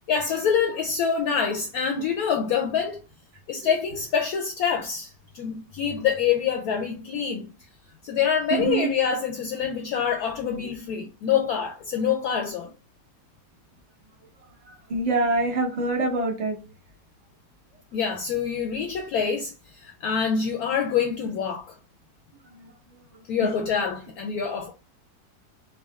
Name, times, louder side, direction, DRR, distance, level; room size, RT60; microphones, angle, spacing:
voice 1, 0.1-3.0 3.5-7.5 8.0-12.7 17.9-21.7 23.3-24.7, left 7 dB, 70° left, 0.9 m, -26 dB
voice 2, 8.5-8.9 14.6-16.6 22.4-23.2, right 3 dB, 30° right, 0.8 m, -26 dB
3.6 x 2.2 x 3.4 m
omnidirectional pair, 1.9 m